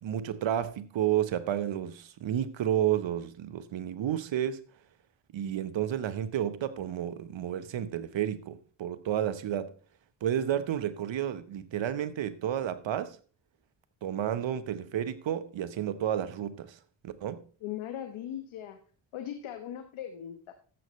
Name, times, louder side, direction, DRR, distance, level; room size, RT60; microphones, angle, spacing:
voice 1, 0.0-4.6 5.3-9.7 10.2-13.2 14.0-16.7 17.0-17.4, right 10 dB, 65° right, 1.2 m, -31 dB
voice 2, 17.6-18.8 19.1-20.5, left 10 dB, 70° left, 1.3 m, -39 dB
13.5 x 7.9 x 3.2 m
supercardioid pair, 50°, 49 cm